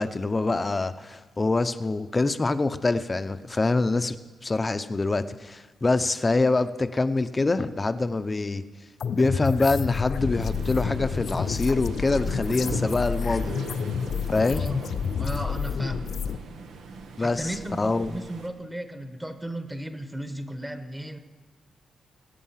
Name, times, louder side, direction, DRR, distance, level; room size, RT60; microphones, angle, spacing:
voice 1, 0.0-4.2 4.4-8.6 9.1-13.5 14.3-14.7 17.2-17.5 17.8-18.1, left 3 dB, 25° left, 11 dB, 0.7 m, -25 dB
sound 1, 9.0-16.4, left 7 dB, 65° left, 0.6 m, -29 dB
Waves surf, 10.1-18.5, right 4 dB, 90° right, 1.2 m, -39 dB
voice 2, 15.2-16.2 17.2-21.2, right 1 dB, 10° right, 8 dB, 1.1 m, -35 dB
20.0 x 8.4 x 5.7 m, 1.3 s
cardioid pair, 115°, 0 cm